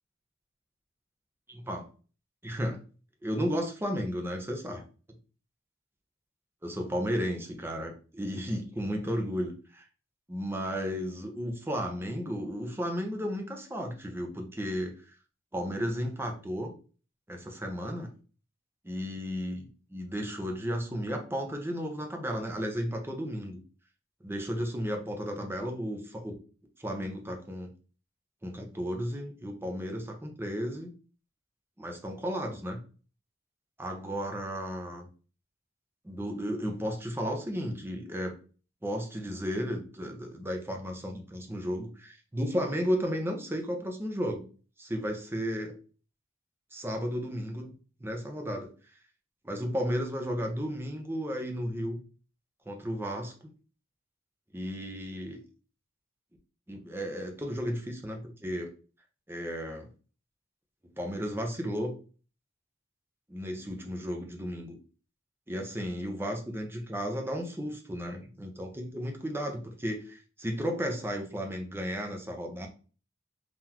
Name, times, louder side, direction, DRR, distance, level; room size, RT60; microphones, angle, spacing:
voice 1, 1.5-1.8 2.4-2.8 3.2-4.8 6.6-9.8 10.3-15.0 15.5-16.7 17.3-18.1 18.9-23.6 24.2-26.3 26.8-27.7 28.4-30.9 31.8-32.8 33.8-35.1 36.0-38.3 38.8-44.4 44.8-45.7 46.7-47.7 48.0-48.7 49.4-52.0 52.7-53.3 54.5-55.4 56.7-58.7 59.3-59.9 61.0-62.0 63.3-64.7 65.5-72.7, equal, 10° right, 2 dB, 0.7 m, -34 dB
3.8 x 2.5 x 2.9 m, 0.37 s
head